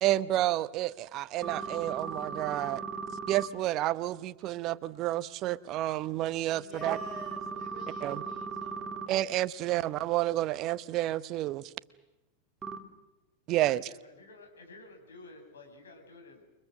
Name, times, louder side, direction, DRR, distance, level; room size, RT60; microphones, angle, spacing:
voice 1, 0.0-2.8 3.3-7.0 8.0-8.2 9.1-11.7 13.5-13.9, right 15 dB, 35° right, 0.8 m, -30 dB
Vintage Telephone, 1.4-3.5 6.8-9.1 12.6-12.8, right 5 dB, 20° right, 2.7 m, -37 dB
voice 2, 6.5-9.0, left 4 dB, 30° left, 6.7 m, -50 dB
voice 3, 13.8-16.4, left 2 dB, 65° left, 6.7 m, -51 dB
29.0 x 24.0 x 6.5 m
figure-of-eight pair, 90°, 0 cm